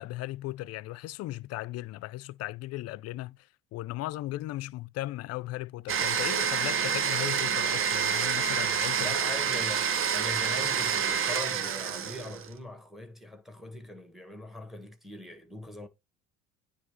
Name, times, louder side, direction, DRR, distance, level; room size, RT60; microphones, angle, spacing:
voice 1, 0.0-3.4 3.7-9.1, left 16 dB, 50° left, 0.4 m, -37 dB
Domestic sounds home sounds, 5.9-12.5, right 7 dB, 40° right, 0.7 m, -28 dB
voice 2, 9.0-15.9, left 2 dB, ahead, 1.3 m, -41 dB
9.6 x 3.3 x 3.1 m
supercardioid pair, 85°, 33 cm